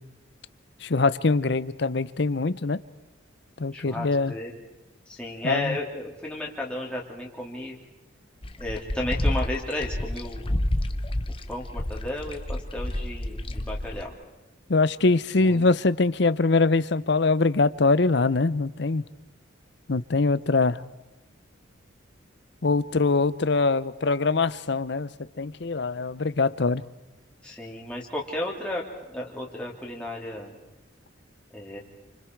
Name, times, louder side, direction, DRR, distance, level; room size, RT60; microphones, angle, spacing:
voice 1, 0.8-2.8 3.6-4.3 5.4-5.8 14.7-19.0 19.9-20.8 22.6-26.8, left 3 dB, 60° left, 0.7 m, -23 dB
voice 2, 3.7-4.5 5.1-7.8 8.6-10.6 11.5-14.1 15.3-15.6 27.4-28.8 29.1-30.6 31.5-31.8, left 1 dB, 5° left, 3.2 m, -33 dB
sound 1, 8.4-14.0, left 1 dB, 25° left, 0.9 m, -29 dB
28.5 x 26.0 x 4.7 m
head